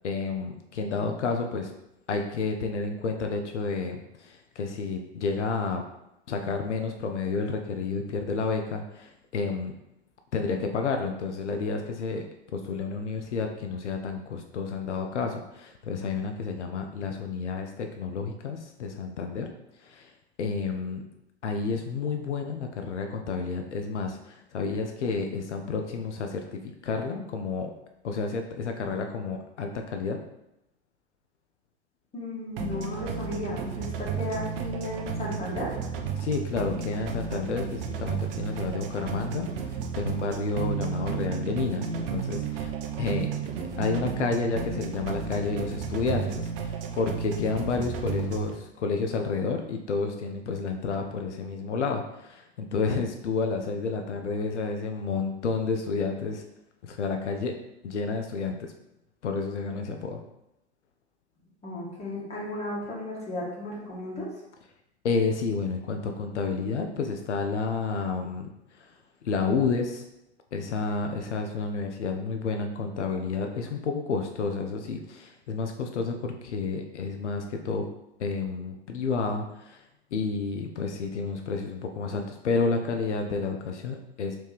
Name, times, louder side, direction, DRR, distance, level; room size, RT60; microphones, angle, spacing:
voice 1, 0.0-1.7 2.1-5.8 6.3-9.7 10.3-12.2 12.5-19.5 19.8-20.1 20.4-21.0 21.4-27.7 28.0-30.2 36.2-42.7 43.0-43.3 43.8-56.4 56.8-57.6 57.8-58.7 59.2-60.2 65.0-68.5 68.8-68.9 69.2-70.0 70.5-77.9 78.2-79.8 80.1-84.4, left 4 dB, 85° left, 4 dB, 0.5 m, -30 dB
voice 2, 32.1-35.7 61.6-64.3, left 1 dB, 20° left, -5 dB, 1.5 m, -34 dB
sound 1, 32.6-48.6, right 6 dB, 55° right, 0.6 m, -33 dB
3.3 x 3.1 x 3.4 m, 0.85 s
hypercardioid pair, 95°, 34 cm